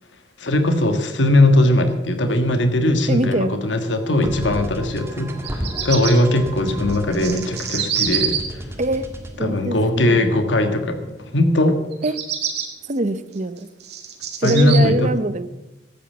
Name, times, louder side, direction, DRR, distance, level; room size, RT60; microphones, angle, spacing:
voice 1, 0.4-8.6 9.4-11.0 11.3-11.8 14.4-15.1, left 1 dB, 85° left, 7 dB, 1.5 m, -19 dB
voice 2, 3.1-3.6 8.8-9.1 9.4-10.5 12.0-12.2 12.8-13.7 14.4-15.5, right 1 dB, 40° right, 14 dB, 0.7 m, -23 dB
sound 1, 4.2-11.5, equal, 15° right, 1.7 m, -34 dB
Bird vocalization bird call bird song, 5.3-6.1 6.9-8.4 11.9-12.6 13.3-14.8, right 9 dB, 60° right, 2.4 m, -25 dB
13.0 x 9.0 x 8.4 m, 0.99 s
head